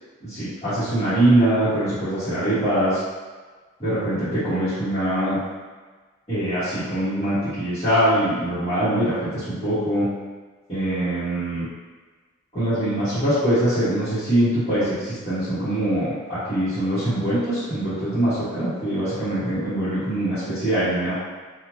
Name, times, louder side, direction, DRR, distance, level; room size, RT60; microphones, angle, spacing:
voice 1, 0.2-3.0 3.8-5.4 6.3-10.1 10.7-11.7 12.5-21.2, right 1 dB, 25° left, -18 dB, 1.2 m, -23 dB
3.1 x 2.5 x 2.7 m, 1.4 s
head